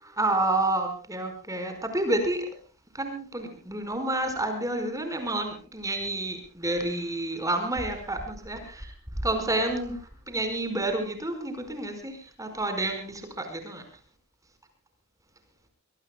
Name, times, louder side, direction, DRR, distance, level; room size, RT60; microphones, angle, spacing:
voice 1, 0.0-2.5 2.9-8.9 9.2-10.0 10.3-13.8, right 2 dB, 15° right, 7 dB, 4.9 m, -29 dB
26.0 x 22.0 x 2.3 m, 0.36 s
head